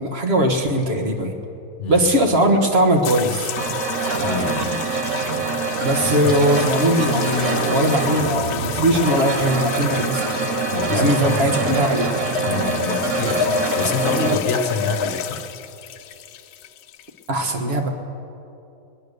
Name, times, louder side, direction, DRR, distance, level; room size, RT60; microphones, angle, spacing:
voice 1, 0.0-1.3 1.9-3.6 5.8-10.3 10.9-12.1 17.3-17.9, right 1 dB, 45° right, 4 dB, 1.6 m, -20 dB
sound 1, 3.0-17.3, left 8 dB, 85° left, 1.2 m, -28 dB
sound 2, 3.6-14.4, right 6 dB, 60° right, 1.1 m, -26 dB
voice 2, 4.2-4.9 6.2-6.4 10.7-11.8 12.5-15.4, left 3 dB, 50° left, 6 dB, 1.4 m, -26 dB
21.0 x 10.5 x 6.6 m, 2.8 s
omnidirectional pair, 1.6 m